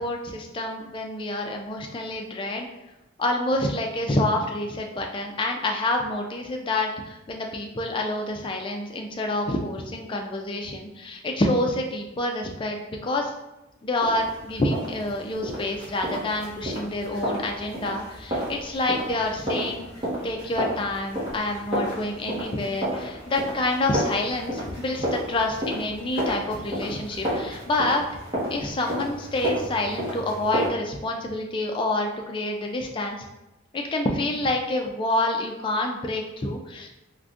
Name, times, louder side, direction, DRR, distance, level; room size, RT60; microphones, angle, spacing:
voice 1, 0.0-2.7 3.2-13.3 13.8-19.9 20.2-28.0 28.5-33.3 33.7-37.0, left 2 dB, 25° left, 2 dB, 0.3 m, -27 dB
sound 1, 14.0-30.7, equal, 25° right, 1.1 m, -32 dB
3.6 x 2.5 x 2.4 m, 0.99 s
head